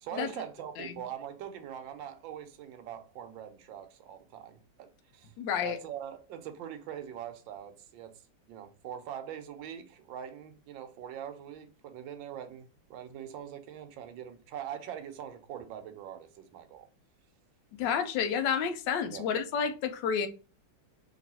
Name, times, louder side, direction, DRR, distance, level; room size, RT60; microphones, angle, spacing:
voice 1, 0.0-5.3 5.6-8.1 8.5-16.9 19.1-19.2, right 9 dB, 80° right, 1.3 m, -42 dB
voice 2, 5.4-5.8 17.8-20.3, left 7 dB, 75° left, 1.2 m, -30 dB
3.0 x 3.0 x 4.1 m
omnidirectional pair, 2.2 m